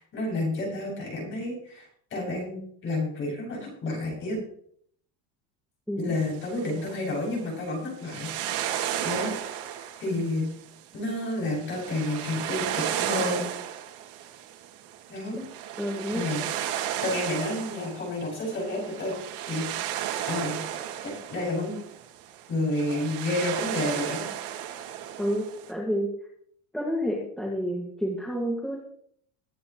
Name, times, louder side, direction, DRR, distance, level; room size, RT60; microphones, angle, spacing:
voice 1, 0.0-4.4 6.0-8.7 9.0-9.4 10.0-10.5 10.9-13.5 15.1-15.5 16.1-16.4 17.0-19.2 19.5-19.6 20.3-20.6 21.0-21.8 22.5-24.2, left 2 dB, 30° left, -3 dB, 7.1 m, -30 dB
sound 1, 6.2-25.7, right 10 dB, 70° right, 2.5 m, -34 dB
voice 2, 15.8-16.2 25.2-26.1 26.7-28.8, equal, ahead, -3 dB, 1.8 m, -29 dB
22.5 x 9.4 x 3.1 m, 0.64 s
cardioid pair, 170°, 41 cm